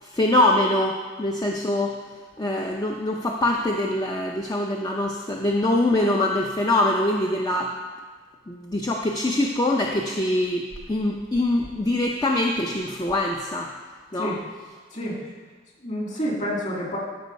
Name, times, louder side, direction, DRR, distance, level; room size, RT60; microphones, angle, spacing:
voice 1, 0.0-1.9 2.4-7.7 8.5-10.6 10.9-13.7 14.1-14.3, left 1 dB, 20° left, 0 dB, 0.5 m, -23 dB
voice 2, 14.9-15.2 15.8-17.0, equal, 40° left, -3 dB, 2.3 m, -28 dB
13.5 x 4.7 x 5.3 m, 1.4 s
head